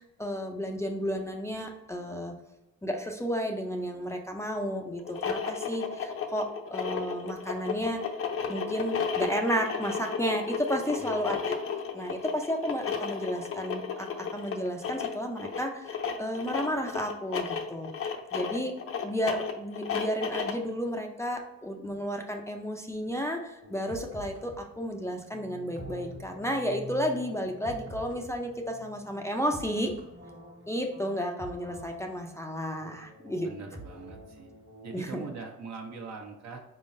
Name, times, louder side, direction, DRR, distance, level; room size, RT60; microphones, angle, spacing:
voice 1, 0.0-2.3 2.8-8.0 8.5-11.4 11.9-17.9 18.3-18.8 19.0-29.9 30.7-33.5 34.9-35.1, equal, 10° left, 1 dB, 0.5 m, -32 dB
sound 1, 5.0-20.7, left 6 dB, 50° left, 0.7 m, -33 dB
sound 2, 23.6-35.5, equal, 40° right, 1.3 m, -47 dB
voice 2, 33.4-34.5 34.8-36.6, right 4 dB, 60° right, 2 dB, 1.0 m, -42 dB
4.2 x 3.7 x 2.6 m, 0.96 s
cardioid pair, 90°, 30 cm